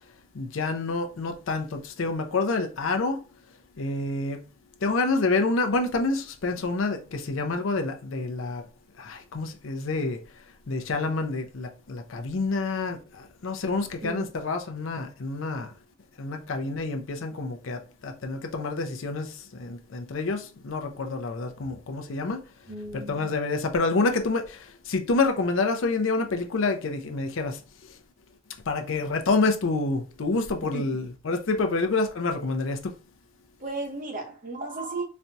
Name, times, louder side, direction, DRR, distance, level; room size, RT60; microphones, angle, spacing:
voice 1, 0.3-3.2 3.8-4.5 4.8-8.6 9.0-10.2 10.7-15.7 16.2-22.4 22.9-28.0 28.7-32.9, left 3 dB, 65° left, 0.5 m, -28 dB
voice 2, 22.7-23.3 30.7-30.8 33.6-35.0, right 2 dB, 40° right, 0.9 m, -34 dB
4.2 x 2.2 x 2.6 m
head